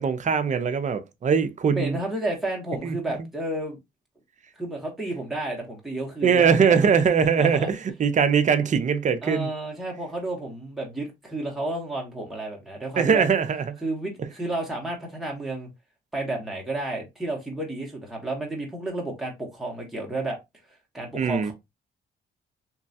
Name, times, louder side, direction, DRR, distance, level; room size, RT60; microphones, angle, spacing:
voice 1, 0.0-2.0 2.8-3.0 6.2-9.5 13.0-13.7 21.1-21.5, right 6 dB, 40° right, 0.5 m, -21 dB
voice 2, 1.7-3.8 4.5-6.9 7.4-7.7 9.2-13.2 13.8-15.7 16.1-20.4 20.9-21.5, right 2 dB, ahead, 0.9 m, -31 dB
3.0 x 2.3 x 2.6 m
cardioid pair, 90°, 20 cm